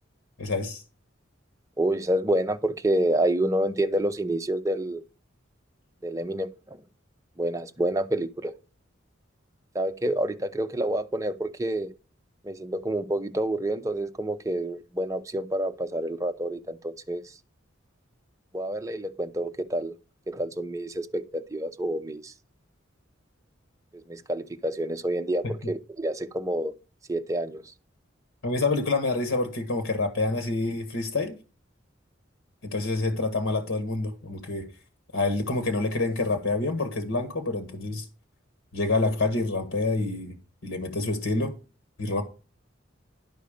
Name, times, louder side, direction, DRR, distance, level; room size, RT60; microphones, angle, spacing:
voice 1, 0.4-0.8 25.4-25.7 28.4-31.4 32.7-34.7 35.1-38.0 38.7-40.4 40.6-41.5 42.0-42.2, left 3 dB, 85° left, 1.5 m, -27 dB
voice 2, 1.8-5.0 6.0-6.8 7.4-8.5 9.7-11.9 12.4-17.2 18.5-19.9 20.3-22.3 24.1-26.7 27.1-27.6, right 1 dB, 15° right, 0.7 m, -28 dB
11.5 x 5.5 x 5.0 m
head